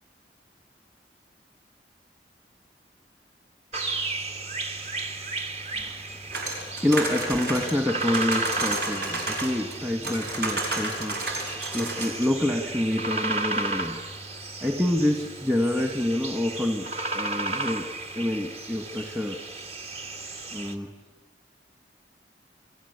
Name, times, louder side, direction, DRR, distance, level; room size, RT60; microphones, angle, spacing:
sound 1, 3.7-20.7, right 2 dB, 35° right, 2.0 m, -34 dB
sound 2, 6.3-9.8 10.0-12.3, right 2 dB, 60° right, 6.7 m, -31 dB
voice 1, 6.8-14.0 14.3-17.9 18.1-19.4 20.5-20.9, left 1 dB, 15° right, 3 dB, 2.0 m, -27 dB
30.0 x 23.5 x 8.4 m, 1.1 s
head